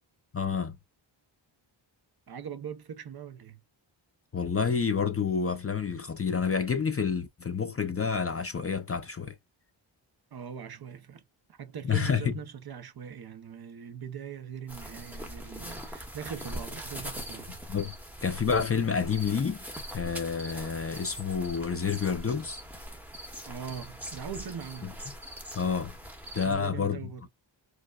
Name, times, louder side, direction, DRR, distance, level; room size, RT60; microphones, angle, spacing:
voice 1, 0.3-0.8 4.3-9.4 11.8-12.3 17.7-17.9 18.2-19.6 19.9-22.6 25.5-25.9 26.3-27.0, left 6 dB, 30° left, 0.4 m, -29 dB
voice 2, 2.3-3.6 10.3-11.2 11.5-17.6 23.5-25.1 26.4-27.3, right 7 dB, 50° right, 0.6 m, -41 dB
sound 1, 14.7-26.5, equal, 5° right, 0.8 m, -42 dB
4.8 x 2.0 x 2.2 m
wide cardioid pair, 140°, 48 cm